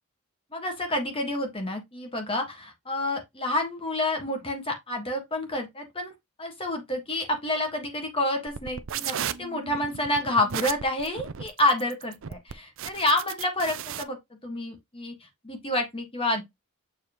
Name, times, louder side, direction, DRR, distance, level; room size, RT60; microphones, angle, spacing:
voice 1, 0.5-6.1 6.4-16.4, left 1 dB, 25° left, 1.5 m, -29 dB
sound 1, 8.5-14.0, right 9 dB, 60° right, 0.5 m, -35 dB
6.9 x 4.7 x 3.0 m
head